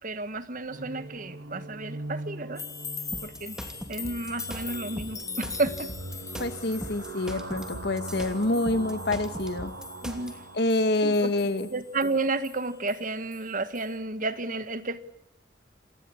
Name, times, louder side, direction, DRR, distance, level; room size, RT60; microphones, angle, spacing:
voice 1, 0.0-2.6 3.2-3.6 3.9-5.9 10.0-10.4 11.0-11.3 11.7-15.0, right 2 dB, 45° right, 1.5 m, -31 dB
sound 1, 0.7-11.5, right 2 dB, 80° right, 2.8 m, -41 dB
sound 2, 2.6-13.5 13.8-13.9, left 5 dB, 20° left, 1.7 m, -42 dB
sound 3, 3.1-10.3, equal, 5° right, 2.8 m, -39 dB
voice 2, 6.4-9.7 10.5-11.7, left 2 dB, 65° left, 1.7 m, -26 dB
28.0 x 18.0 x 8.7 m
head